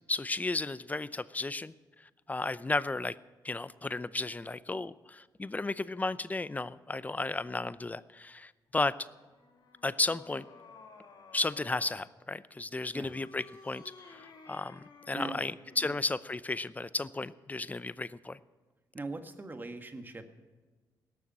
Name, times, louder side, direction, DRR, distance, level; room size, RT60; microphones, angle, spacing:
voice 1, 0.1-1.7 2.3-3.1 3.4-8.9 9.8-10.5 11.3-18.4, left 3 dB, 20° left, 16 dB, 0.6 m, -34 dB
sound 1, 9.0-12.0 13.0-16.1, left 4 dB, 65° left, 2.6 m, -54 dB
voice 2, 15.1-15.4 15.8-16.0 18.9-20.3, right 3 dB, 25° right, 7 dB, 1.4 m, -41 dB
18.0 x 7.0 x 8.7 m, 1.3 s
cardioid pair, 70°, 8 cm